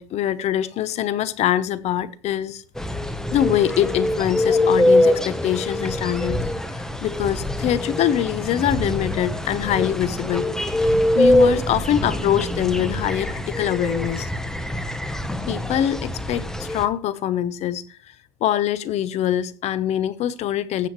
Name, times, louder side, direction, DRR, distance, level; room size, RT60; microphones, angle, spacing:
voice 1, 0.0-2.6 3.3-6.4 7.0-14.3 15.5-17.8 18.4-20.9, left 11 dB, 45° left, 0.8 m, -24 dB
sound 1, 2.7-16.9, left 1 dB, 5° left, 1.0 m, -23 dB
15.0 x 7.6 x 3.1 m
supercardioid pair, 130°, 15 cm